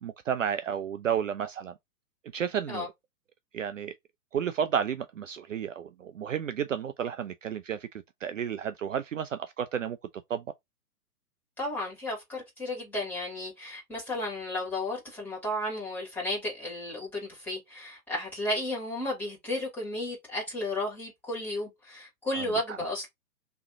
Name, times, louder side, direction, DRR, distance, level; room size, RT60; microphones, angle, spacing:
voice 1, 0.0-1.7 2.3-2.9 3.5-3.9 4.3-7.9 8.2-10.0 10.3-10.4 22.3-22.8, right 8 dB, 60° right, 0.5 m, -32 dB
voice 2, 11.6-23.1, left 1 dB, 5° left, 2.4 m, -33 dB
3.5 x 3.1 x 2.7 m
figure-of-eight pair, 125°, 46 cm